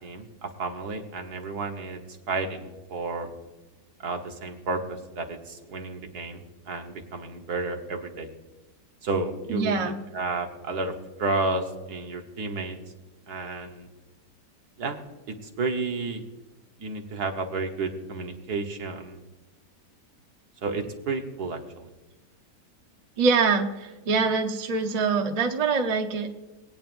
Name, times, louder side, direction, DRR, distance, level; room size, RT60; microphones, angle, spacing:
voice 1, 0.0-2.0 2.3-3.3 4.0-8.3 9.0-10.9 11.2-12.8 13.3-13.9 14.8-15.0 15.3-16.2 16.8-19.2 20.6-21.9, right 3 dB, 65° right, 3 dB, 1.8 m, -31 dB
voice 2, 9.5-10.0 23.2-26.3, right 4 dB, 35° right, 5 dB, 0.7 m, -24 dB
21.0 x 9.1 x 2.6 m, 1.1 s
omnidirectional pair, 1.8 m